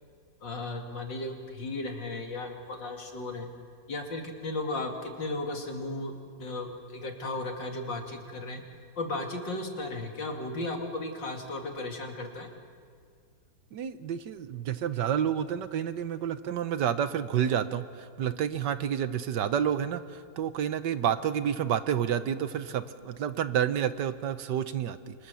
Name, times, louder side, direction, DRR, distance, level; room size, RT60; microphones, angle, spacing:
voice 1, 0.4-3.5 3.9-8.6 9.0-12.5, left 2 dB, 70° left, 3 dB, 3.2 m, -35 dB
voice 2, 13.7-25.3, right 9 dB, 70° right, 12 dB, 1.4 m, -29 dB
29.0 x 24.5 x 7.0 m, 2.1 s
omnidirectional pair, 2.0 m